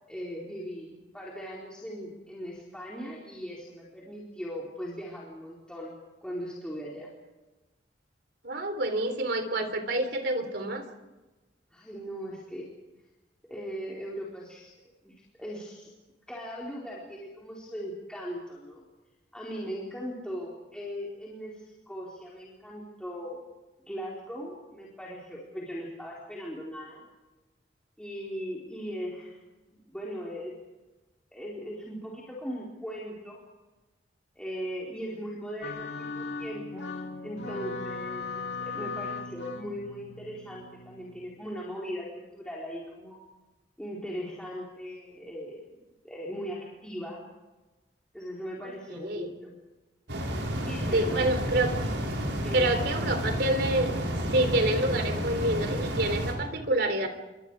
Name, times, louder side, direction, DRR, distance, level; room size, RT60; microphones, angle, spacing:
voice 1, 0.1-6.0 6.2-7.1 11.7-12.7 13.5-15.9 16.3-18.8 19.3-23.4 23.9-27.1 28.0-29.4 29.6-30.5 31.3-33.4 34.4-36.9 37.2-43.2 43.8-45.7 46.0-47.3 48.1-49.5 50.6-51.3 52.4-52.9, equal, 5° left, -5 dB, 4.4 m, -39 dB
voice 2, 8.4-10.9 48.6-49.3 50.9-51.7 52.5-53.9 54.3-57.1, right 1 dB, 60° right, 8 dB, 3.6 m, -27 dB
sound 1, 35.6-41.4, left 4 dB, 75° left, 3.0 m, -38 dB
sound 2, 50.1-56.3, equal, 85° right, 6.3 m, -31 dB
29.0 x 25.0 x 4.9 m, 1.1 s
head